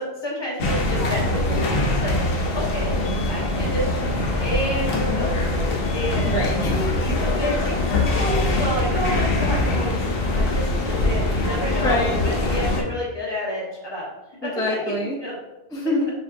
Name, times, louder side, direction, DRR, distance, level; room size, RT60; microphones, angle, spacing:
voice 1, 0.0-2.1 2.5-2.9 3.3-3.8 4.4-4.9 5.2-5.3 5.9-6.4 7.0-14.0 14.4-14.8 15.0-15.3, equal, 25° left, -5 dB, 1.2 m, -29 dB
sound 1, 0.6-12.8, left 2 dB, 70° left, 0.9 m, -23 dB
voice 2, 4.9-5.3 6.3-7.2 11.8-12.2 14.4-15.2 15.7-16.1, left 1 dB, 5° left, -2 dB, 0.4 m, -26 dB
6.3 x 2.6 x 2.5 m, 0.96 s
omnidirectional pair, 1.0 m